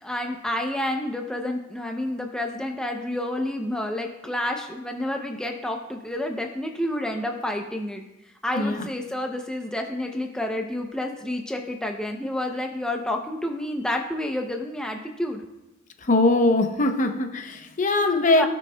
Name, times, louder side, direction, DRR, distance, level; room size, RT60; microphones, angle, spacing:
voice 1, 0.0-8.0 8.4-15.4 18.4-18.5, left 1 dB, 5° left, 2 dB, 0.5 m, -29 dB
voice 2, 16.1-18.5, left 2 dB, 40° left, 7 dB, 0.7 m, -21 dB
17.0 x 6.2 x 2.2 m, 0.98 s
head